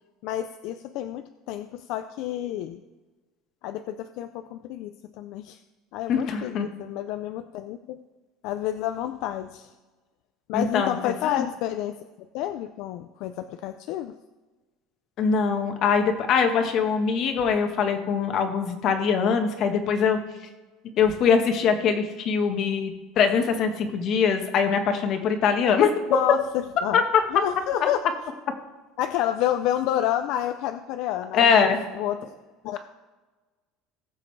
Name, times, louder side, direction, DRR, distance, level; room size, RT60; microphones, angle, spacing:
voice 1, 0.2-2.8 3.6-5.6 5.9-8.0 8.4-9.7 10.5-12.0 12.3-14.2 26.1-27.0 27.3-28.0 29.0-32.2 32.6-32.8, left 12 dB, 60° left, 9 dB, 0.5 m, -29 dB
voice 2, 6.1-6.7 10.5-11.4 15.2-20.2 21.0-25.9 26.9-27.0 31.3-31.8, left 6 dB, 40° left, 6 dB, 1.3 m, -22 dB
19.5 x 7.5 x 3.3 m, 1.3 s
cardioid pair, 165°, 0 cm